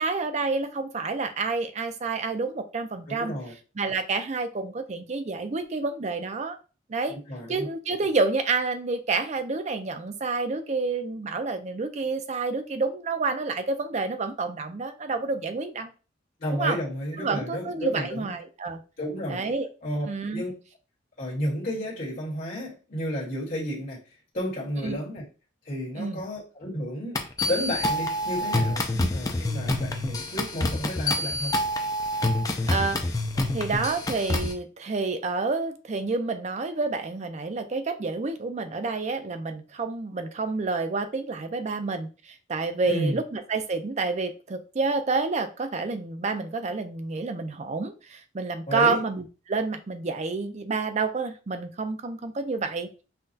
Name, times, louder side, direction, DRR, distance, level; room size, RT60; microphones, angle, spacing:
voice 1, 0.0-3.3 3.8-6.6 6.9-7.2 7.5-15.9 16.5-16.8 17.2-18.8 19.3-19.7 20.0-20.4 24.8-25.0 26.0-26.2 29.0-29.1 32.7-33.0 33.5-53.0, right 4 dB, 40° right, 8 dB, 0.5 m, -29 dB
voice 2, 3.1-3.5 7.1-7.7 16.4-18.3 19.0-19.4 19.8-20.1 20.3-20.5 21.2-24.0 24.3-25.2 25.6-28.8 29.1-31.6 42.8-43.2 48.7-49.0, equal, 50° left, -7 dB, 1.6 m, -32 dB
sound 1, 27.2-34.5, left 1 dB, 20° left, 0.4 m, -27 dB
5.6 x 2.3 x 2.7 m, 0.34 s
head